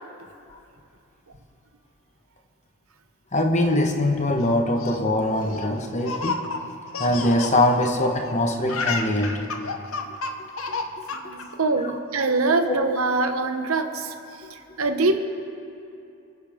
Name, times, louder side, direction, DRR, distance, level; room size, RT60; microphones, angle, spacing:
voice 1, 3.3-6.4 7.0-9.4 11.7-11.9 12.3-12.4 12.6-12.8, left 1 dB, 35° left, 3 dB, 1.2 m, -22 dB
Laughter, 4.5-8.3 8.6-11.5, left 4 dB, 75° left, 0.9 m, -31 dB
voice 2, 11.1-14.1 14.5-15.2, right 3 dB, 80° right, 7 dB, 1.0 m, -24 dB
28.0 x 10.0 x 3.7 m, 2.8 s
head